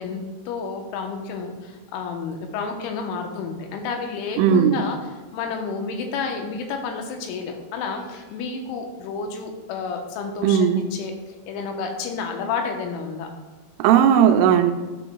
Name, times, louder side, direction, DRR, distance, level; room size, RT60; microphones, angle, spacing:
voice 1, 0.0-5.0 5.3-11.1 11.5-13.3, left 5 dB, 80° left, 4 dB, 3.2 m, -30 dB
voice 2, 4.4-4.8 10.4-10.8 13.8-14.7, right 8 dB, 85° right, 6 dB, 3.1 m, -16 dB
14.0 x 6.9 x 2.3 m, 1.3 s
omnidirectional pair, 5.6 m